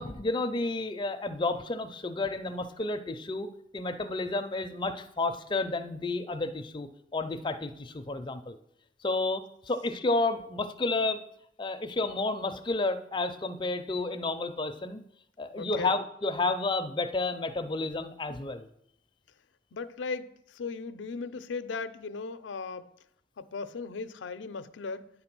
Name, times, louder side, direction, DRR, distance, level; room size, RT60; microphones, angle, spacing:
voice 1, 0.0-3.5 3.7-8.6 9.0-11.2 11.6-15.0 15.4-18.7, left 2 dB, 25° left, 8 dB, 0.4 m, -31 dB
voice 2, 15.5-16.0 19.7-22.9 23.4-25.1, left 4 dB, 85° left, 12 dB, 0.5 m, -37 dB
9.3 x 3.9 x 6.0 m, 0.74 s
head